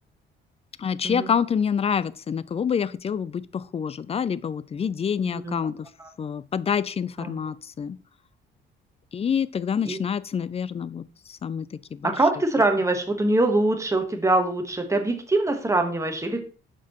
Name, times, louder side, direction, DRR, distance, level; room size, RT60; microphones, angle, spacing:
voice 1, 0.8-5.9 6.2-8.0 9.1-12.1, left 7 dB, 30° left, 0.4 m, -27 dB
voice 2, 5.2-5.6 6.0-6.1 7.2-7.4 9.9-10.0 12.0-16.4, right 2 dB, 15° right, 1.4 m, -23 dB
6.7 x 5.6 x 3.0 m
cardioid pair, 90°, 20 cm